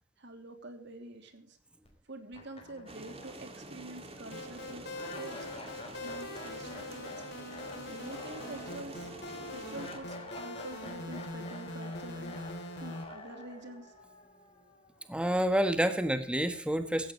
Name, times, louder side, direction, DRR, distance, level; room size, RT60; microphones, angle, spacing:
voice 1, 0.2-1.6 2.1-4.9 5.2-5.5 6.0-7.3 7.8-9.1 9.5-12.4 12.8-13.9, right 2 dB, 65° right, 6 dB, 3.1 m, -46 dB
sound 1, 1.8-1.9 2.3-15.4, left 2 dB, 30° left, 4.5 m, -49 dB
sound 2, 2.9-10.0, right 2 dB, 30° right, 2.5 m, -48 dB
sound 3, 4.3-13.0, left 1 dB, 60° left, 3.8 m, -43 dB
voice 2, 15.1-17.1, equal, 5° right, 8 dB, 1.5 m, -28 dB
17.0 x 15.0 x 3.3 m, 0.43 s
head